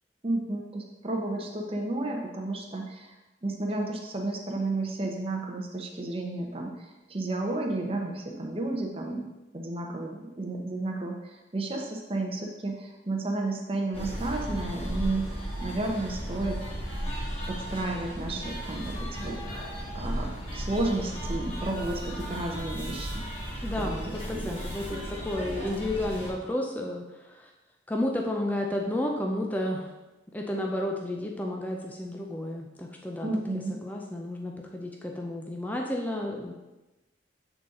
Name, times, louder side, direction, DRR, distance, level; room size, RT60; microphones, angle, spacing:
voice 1, 0.2-3.1 3.4-9.3 9.5-15.3 15.6-16.6 17.5-19.3 19.9-23.2 23.8-24.6 33.2-33.7, right 2 dB, 30° right, 1 dB, 0.8 m, -32 dB
sound 1, 13.9-26.3, equal, 30° left, 1.5 m, -35 dB
voice 2, 23.6-27.5 27.9-29.9 30.3-33.3 33.8-36.5, left 1 dB, 10° left, 0 dB, 0.5 m, -32 dB
7.3 x 4.0 x 3.7 m, 1.1 s
head